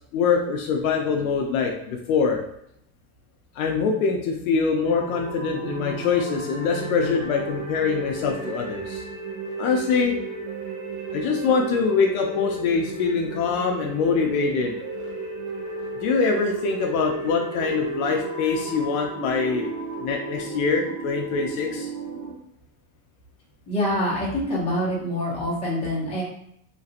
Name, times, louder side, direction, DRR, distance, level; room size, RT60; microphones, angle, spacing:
voice 1, 0.1-2.4 3.6-9.0 9.6-10.1 11.1-14.7 16.0-19.7 20.0-21.9, left 5 dB, 65° left, 2 dB, 0.6 m, -24 dB
sound 1, 4.8-22.3, right 3 dB, 90° right, 1.3 m, -33 dB
voice 2, 23.7-26.2, equal, 15° left, -7 dB, 0.9 m, -25 dB
3.0 x 2.5 x 2.7 m, 0.74 s
supercardioid pair, 165°, 47 cm